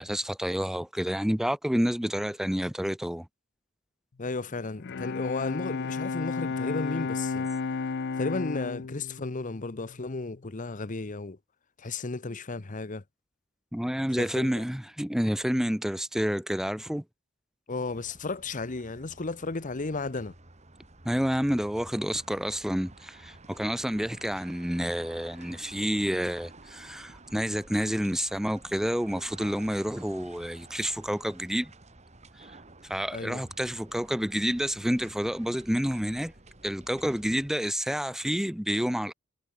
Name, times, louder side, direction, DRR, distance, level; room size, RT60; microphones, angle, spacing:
voice 1, 0.0-3.3 13.7-17.0 21.0-31.7 32.4-32.5 32.9-36.3 36.6-39.1, equal, ahead, 0.5 m, -29 dB
voice 2, 4.2-7.5 8.2-11.4 11.8-13.0 14.2-14.6 17.7-20.3 33.1-33.4, left 3 dB, 40° left, 0.9 m, -34 dB
Bowed string instrument, 4.8-10.4, left 4 dB, 55° left, 0.5 m, -33 dB
sound 1, 17.9-37.5, right 2 dB, 35° right, 3.0 m, -52 dB
head